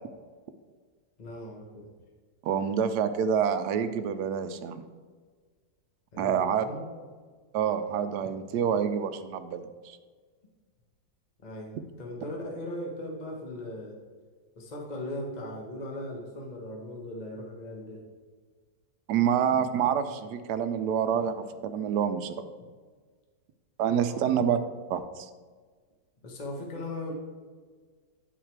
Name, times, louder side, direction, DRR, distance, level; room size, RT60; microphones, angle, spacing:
voice 1, 1.2-1.9 6.1-6.9 11.4-14.0 14.6-18.0 24.0-24.2 26.2-27.1, left 1 dB, 30° left, 0 dB, 1.1 m, -38 dB
voice 2, 2.4-4.8 6.2-6.7 7.5-10.0 19.1-22.5 23.8-24.6 24.9-25.3, right 8 dB, 75° right, 10 dB, 1.1 m, -27 dB
10.0 x 4.0 x 4.5 m, 1.5 s
omnidirectional pair, 1.9 m